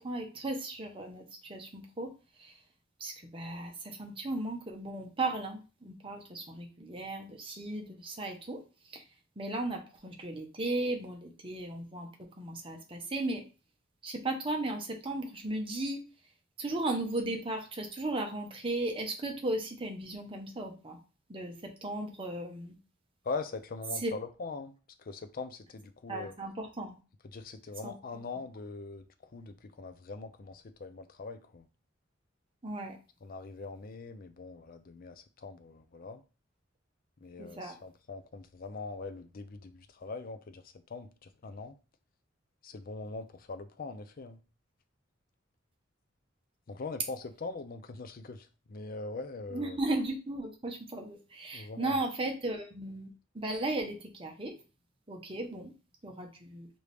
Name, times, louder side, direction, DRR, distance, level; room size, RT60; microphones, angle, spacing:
voice 1, 0.0-2.1 2.4-2.6 3.0-8.6 8.9-9.0 9.4-12.1 12.4-13.4 14.0-16.0 16.6-21.0 21.3-22.7 24.0-24.1 26.1-26.9 27.8-27.9 32.6-33.0 37.4-37.8 49.5-53.1 53.3-54.6 55.1-55.7 56.0-56.7, right 2 dB, 30° right, 0.9 m, -36 dB
voice 2, 23.2-26.3 27.2-31.7 33.2-36.2 37.2-41.7 42.6-44.4 46.7-49.8 51.5-52.0, left 3 dB, 45° left, 0.5 m, -42 dB
4.6 x 2.6 x 3.4 m
head